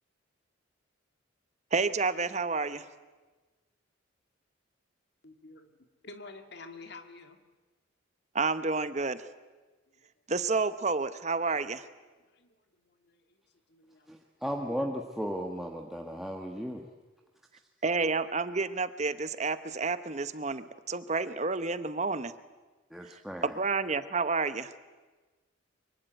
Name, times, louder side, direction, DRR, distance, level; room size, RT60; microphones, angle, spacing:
voice 1, 1.7-2.9 8.3-9.3 10.3-11.9 17.8-22.3 23.0-23.1 23.4-24.7, right 4 dB, 35° right, 12 dB, 0.9 m, -30 dB
voice 2, 5.2-7.4 9.9-10.1 12.2-13.4 13.7-14.1 14.6-14.7, left 3 dB, 55° left, 7 dB, 2.3 m, -50 dB
voice 3, 14.1-16.8 22.9-23.5, equal, ahead, 1 dB, 1.4 m, -35 dB
24.0 x 23.0 x 9.3 m, 1.3 s
head